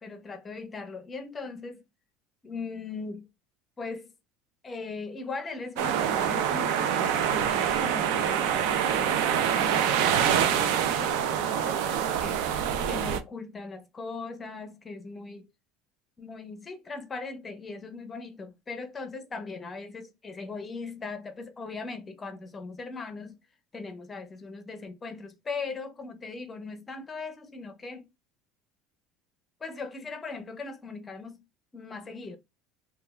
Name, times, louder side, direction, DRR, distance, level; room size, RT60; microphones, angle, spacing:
voice 1, 0.0-1.8 2.4-3.3 3.8-4.1 4.6-12.4 12.8-15.5 16.2-23.4 23.7-28.1 29.6-31.4 31.7-32.4, left 4 dB, 20° left, 0.5 m, -39 dB
sound 1, 5.8-13.2, right 9 dB, 75° right, 0.4 m, -26 dB
3.1 x 2.2 x 2.2 m
cardioid pair, 145°, 0 cm